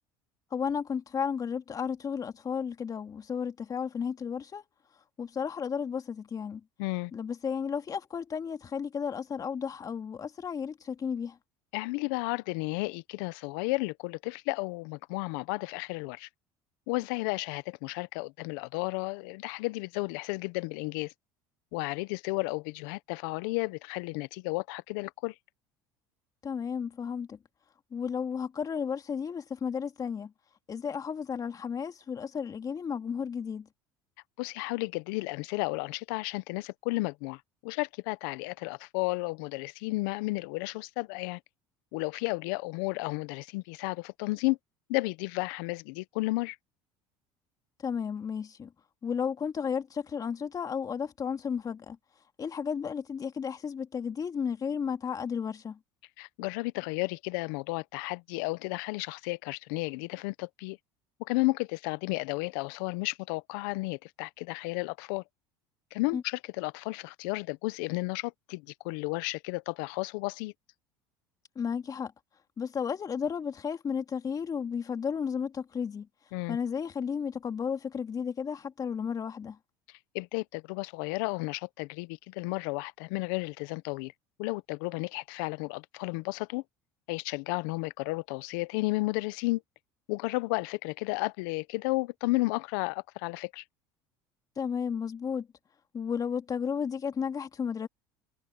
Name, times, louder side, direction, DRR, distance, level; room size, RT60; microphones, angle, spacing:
voice 1, 0.5-4.6 5.2-6.6 7.1-11.4 26.4-27.4 27.9-30.3 30.7-33.7 47.8-48.7 49.0-52.0 52.4-55.8 66.1-66.2 71.6-72.1 72.6-76.1 76.5-79.6 94.6-95.5 95.9-97.9, left 6 dB, 35° left, 2.5 m, -33 dB
voice 2, 6.8-7.1 11.7-16.3 16.9-21.1 21.7-25.3 34.4-41.4 41.9-44.6 44.9-46.6 56.2-60.8 61.2-65.2 65.9-70.5 76.3-76.6 80.1-84.1 84.4-86.6 87.1-89.6 90.1-93.6, left 24 dB, 75° left, 0.9 m, -33 dB
supercardioid pair, 90°, 11 cm